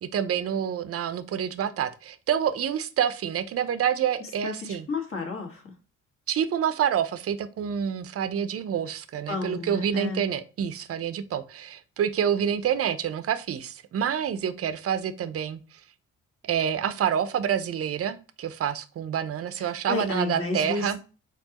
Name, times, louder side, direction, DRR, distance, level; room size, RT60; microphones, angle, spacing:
voice 1, 0.0-4.9 6.3-15.6 16.4-21.0, right 9 dB, 50° right, 13 dB, 0.6 m, -27 dB
voice 2, 4.4-5.7 9.3-10.2 19.6-21.0, left 3 dB, 45° left, 3 dB, 1.6 m, -32 dB
4.4 x 3.8 x 2.9 m, 0.35 s
cardioid pair, 90°, 30 cm